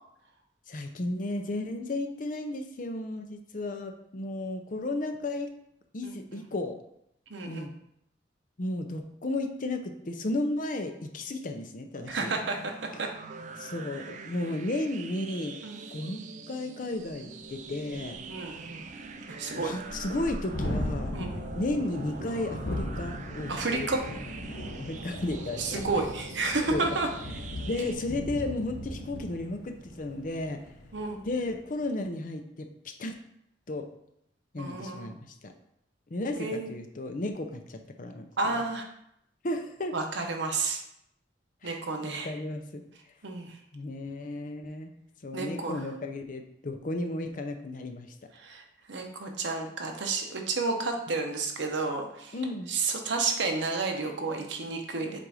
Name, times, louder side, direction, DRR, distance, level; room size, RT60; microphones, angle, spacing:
voice 1, 0.7-5.5 5.9-6.8 7.5-7.7 8.6-12.3 13.6-15.6 15.9-16.2 16.5-18.2 19.5-21.1 21.5-23.9 24.8-25.8 26.7-26.9 27.6-30.6 31.2-33.2 33.7-33.9 34.5-35.5 36.1-38.3 38.5-38.6 39.4-40.0 41.6-42.8 43.7-44.9 45.2-48.1 51.1-51.2 52.3-52.7, left 2 dB, 45° left, 6 dB, 0.6 m, -34 dB
voice 2, 6.0-6.4 7.3-7.7 12.1-13.1 15.6-15.8 18.3-18.9 19.3-19.7 21.1-21.3 23.5-24.0 25.6-27.1 30.9-31.2 34.6-35.1 36.4-36.7 38.4-38.8 39.9-40.8 41.6-42.3 43.2-43.6 45.3-45.8 48.3-52.4 52.7-55.2, right 3 dB, 80° right, 3 dB, 0.9 m, -31 dB
sound 1, 11.9-27.9, right 4 dB, 40° right, 0.4 m, -44 dB
Thunderstorm, 17.1-17.2 17.5-17.6 17.9-31.5, left 1 dB, 80° left, 1.0 m, -38 dB
7.5 x 2.6 x 4.8 m, 0.76 s
head